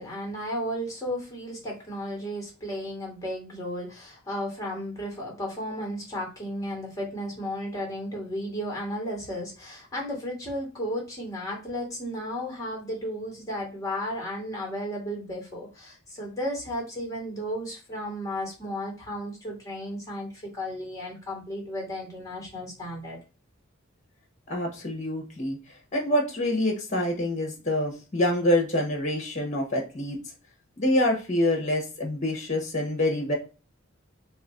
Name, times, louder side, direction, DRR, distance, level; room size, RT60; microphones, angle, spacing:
voice 1, 0.0-23.2, equal, 15° left, -1 dB, 1.8 m, -34 dB
voice 2, 24.5-25.6 25.9-30.2 30.8-33.3, left 1 dB, 40° left, 2 dB, 1.3 m, -26 dB
3.1 x 3.1 x 3.8 m, 0.32 s
head